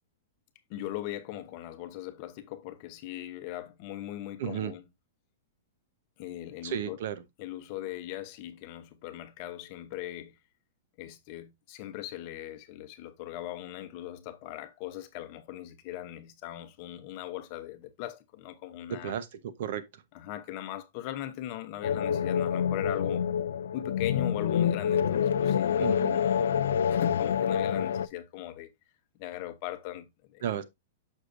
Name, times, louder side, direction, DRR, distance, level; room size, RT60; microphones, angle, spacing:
voice 1, 0.7-4.8 6.2-7.0 7.4-10.4 11.0-19.2 20.1-23.3 23.7-26.6 26.9-28.7 29.1-30.5, left 13 dB, 35° left, 0.9 m, -40 dB
voice 2, 4.4-4.7 6.6-7.2 18.9-20.0 25.8-26.2 30.4-30.6, right 9 dB, 55° right, 0.8 m, -34 dB
sound 1, 21.8-28.1, left 8 dB, 90° left, 0.4 m, -27 dB
6.5 x 6.3 x 2.6 m
supercardioid pair, 165°, 0 cm